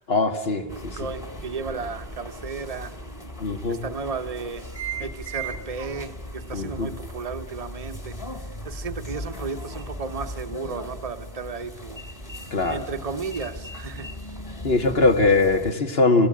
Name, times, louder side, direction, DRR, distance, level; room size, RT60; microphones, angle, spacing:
voice 1, 0.1-1.0 3.4-3.8 6.5-6.9 12.5-12.8 14.6-16.3, left 3 dB, 65° left, 5 dB, 2.1 m, -21 dB
voice 2, 0.6-2.9 3.7-4.6 5.0-8.1 8.6-12.0 12.7-14.1, right 4 dB, 35° right, 8 dB, 1.1 m, -34 dB
sound 1, 0.7-15.7, right 1 dB, 30° left, 2.2 m, -37 dB
28.5 x 20.0 x 8.8 m, 1.1 s
omnidirectional pair, 1.1 m